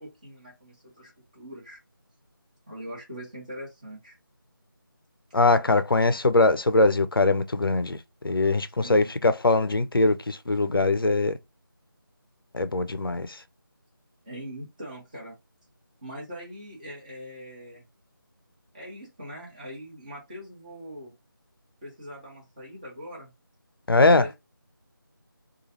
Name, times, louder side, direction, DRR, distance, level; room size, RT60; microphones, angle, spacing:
voice 1, 0.0-1.8 2.7-4.2 8.8-9.1 14.2-15.4 16.0-17.8 18.7-21.1 21.8-23.3 24.0-24.4, equal, 20° right, 1.2 m, -41 dB
voice 2, 5.3-8.0 8.2-11.4 12.5-13.3 23.9-24.3, left 2 dB, 75° left, 0.5 m, -21 dB
3.0 x 2.3 x 2.9 m
figure-of-eight pair, 165°, 12 cm